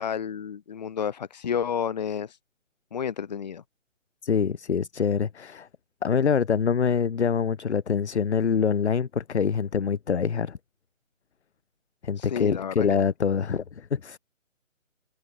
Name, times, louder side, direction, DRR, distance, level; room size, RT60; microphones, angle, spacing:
voice 1, 0.0-2.4 2.9-3.6 12.2-12.9, left 7 dB, 35° left, 1.8 m, -30 dB
voice 2, 4.2-5.7 6.0-10.6 12.0-14.2, left 6 dB, 60° left, 0.8 m, -25 dB
figure-of-eight pair, 155°, 39 cm